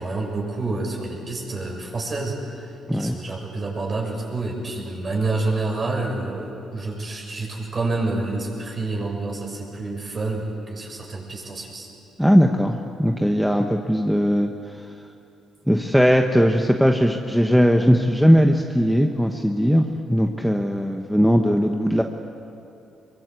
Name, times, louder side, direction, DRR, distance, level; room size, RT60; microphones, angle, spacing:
voice 1, 0.0-11.9, right 3 dB, 35° right, 0 dB, 6.8 m, -28 dB
voice 2, 12.2-14.8 15.7-22.0, equal, ahead, 3 dB, 1.2 m, -19 dB
23.5 x 23.0 x 8.4 m, 2.8 s
cardioid pair, 90°, 0 cm